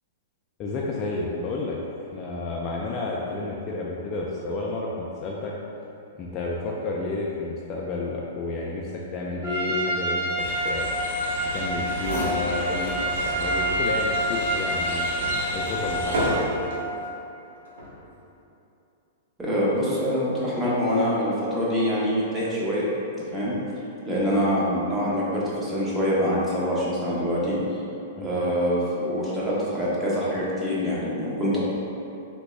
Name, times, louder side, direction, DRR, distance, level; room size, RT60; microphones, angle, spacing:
voice 1, 0.6-5.5 6.1-10.9 11.5-15.1 15.5-16.2 28.2-28.4, left 3 dB, 30° left, -3 dB, 0.3 m, -31 dB
Trumpet, 9.4-16.8, right 1 dB, 45° right, 1.1 m, -28 dB
sound 1, 10.4-16.4, left 2 dB, 70° left, 0.6 m, -36 dB
sound 2, 11.6-11.7 11.9-13.1 13.5-13.6 14.3-16.9 17.7-18.0, equal, 80° right, 0.9 m, -30 dB
voice 2, 19.4-22.9 23.3-23.5 24.1-27.6 28.2-31.6, equal, 10° right, -8 dB, 0.8 m, -25 dB
3.4 x 2.2 x 3.1 m, 2.8 s
hypercardioid pair, 135°, 0 cm